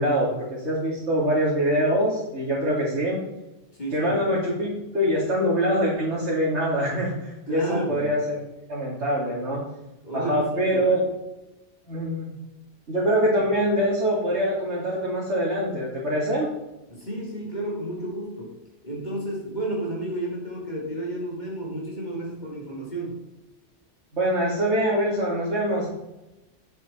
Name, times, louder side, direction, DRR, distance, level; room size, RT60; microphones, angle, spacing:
voice 1, 0.0-3.2 3.9-8.4 8.7-9.6 10.1-11.0 11.9-12.3 12.9-16.5 24.1-25.9, equal, 70° right, -6 dB, 2.9 m, -24 dB
voice 2, 3.7-4.4 7.5-8.1 10.0-11.0 13.3-13.4 16.9-18.5 18.8-23.2, right 1 dB, 40° left, -3 dB, 3.3 m, -32 dB
9.5 x 7.9 x 4.5 m, 0.97 s
omnidirectional pair, 1.2 m